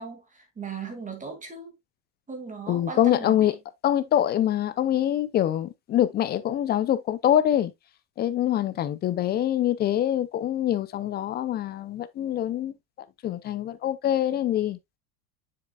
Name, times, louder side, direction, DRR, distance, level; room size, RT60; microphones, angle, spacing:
voice 1, 0.0-1.7 2.3-3.5, right 5 dB, 15° right, 2.2 m, -38 dB
voice 2, 2.7-3.5 3.8-7.7 8.2-12.7 13.2-14.8, left 11 dB, 20° left, 0.4 m, -24 dB
7.3 x 6.6 x 2.3 m
supercardioid pair, 140°, 50 cm